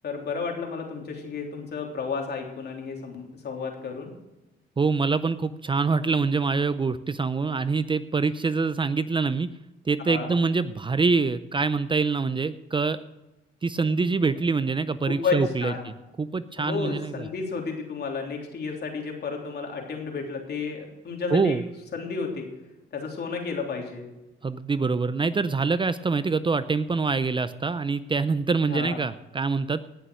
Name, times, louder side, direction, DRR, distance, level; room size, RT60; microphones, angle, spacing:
voice 1, 0.0-4.1 10.0-10.3 15.0-15.8 16.6-21.6 21.9-22.5 22.9-24.0 28.7-29.0, left 5 dB, 55° left, 2 dB, 3.5 m, -32 dB
voice 2, 4.8-9.5 9.9-13.0 13.6-15.9 16.2-17.3 21.3-21.6 24.4-29.8, right 4 dB, 25° right, 13 dB, 0.6 m, -25 dB
18.0 x 6.9 x 6.3 m, 1.0 s
cardioid pair, 90°, 20 cm